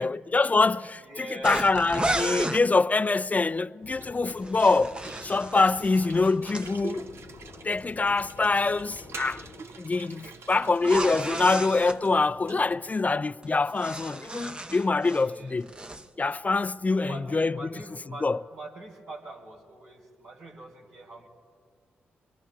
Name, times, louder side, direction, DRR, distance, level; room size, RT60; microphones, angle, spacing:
voice 1, 0.0-7.1 7.6-9.4 9.8-15.7 16.2-17.6 18.2-18.4, left 3 dB, 30° left, 0.4 m, -25 dB
voice 2, 0.8-1.8 10.3-10.6 15.2-15.6 16.6-21.3, right 2 dB, 80° right, 3.3 m, -44 dB
sound 1, 1.4-2.6 4.3-6.7 10.8-12.0 13.4-15.3 15.6-16.1, right 2 dB, 20° right, 0.7 m, -33 dB
sound 2, 3.8-9.6, left 4 dB, 60° left, 1.0 m, -48 dB
sound 3, 3.8-13.1, right 4 dB, 65° right, 0.8 m, -45 dB
24.5 x 23.5 x 2.4 m
hypercardioid pair, 40°, 5 cm